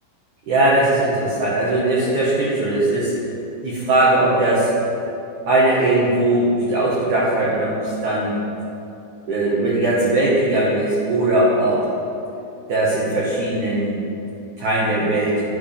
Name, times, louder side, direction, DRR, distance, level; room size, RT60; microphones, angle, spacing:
voice 1, 0.5-3.1 3.6-4.7 5.5-8.4 9.3-11.8 12.7-14.0 14.6-15.4, right 2 dB, 85° right, -7 dB, 1.7 m, -19 dB
12.5 x 8.0 x 3.4 m, 2.7 s
omnidirectional pair, 5.6 m